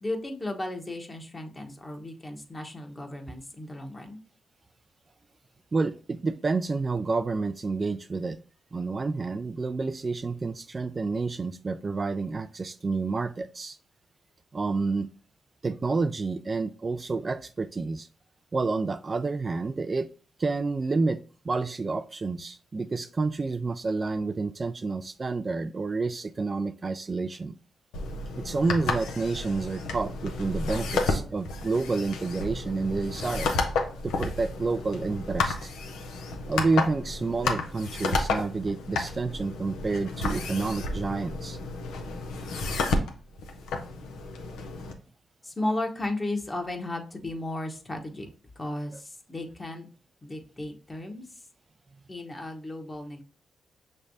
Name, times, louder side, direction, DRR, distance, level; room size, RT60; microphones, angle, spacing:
voice 1, 0.0-4.2 45.4-48.3 48.5-49.9 50.2-51.5 52.1-53.2, left 1 dB, 30° left, 4 dB, 1.1 m, -34 dB
voice 2, 5.7-8.4 8.7-13.8 14.5-15.1 15.6-18.1 18.5-20.1 20.4-27.5 28.4-33.5 34.0-35.7 36.5-41.6, right 3 dB, 40° right, 10 dB, 0.3 m, -29 dB
sound 1, 27.9-44.9, left 3 dB, 85° left, 0.7 m, -31 dB
5.9 x 3.3 x 2.7 m, 0.40 s
supercardioid pair, 50°, 0 cm